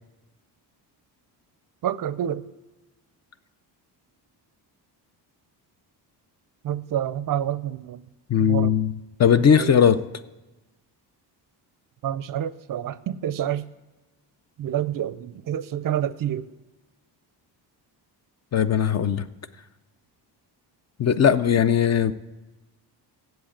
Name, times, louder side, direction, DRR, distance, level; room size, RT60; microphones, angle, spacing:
voice 1, 1.8-2.4 6.6-8.0 8.4-8.7 9.5-9.7 12.0-13.6 14.6-16.5, right 10 dB, 50° right, 16 dB, 0.5 m, -28 dB
voice 2, 8.3-8.9 9.2-10.0 18.5-19.3 21.0-22.1, left 8 dB, 40° left, 13 dB, 0.4 m, -19 dB
7.9 x 7.8 x 8.5 m, 1.1 s
cardioid pair, 120°, 43 cm